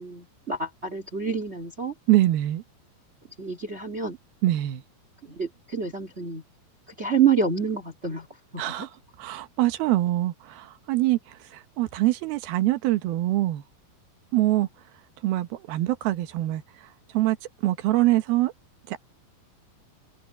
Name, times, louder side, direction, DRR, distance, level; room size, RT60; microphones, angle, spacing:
voice 1, 0.0-1.9 3.4-4.2 5.2-6.4 6.9-8.3 8.5-8.9, right 6 dB, 25° right, 1.7 m, -27 dB
voice 2, 2.1-2.6 4.4-4.8 8.6-8.9 9.2-13.6 14.3-14.7 15.2-16.6 17.1-17.4 17.6-18.5 18.9-19.0, right 16 dB, 90° right, 3.1 m, -24 dB
omnidirectional pair, 4.2 m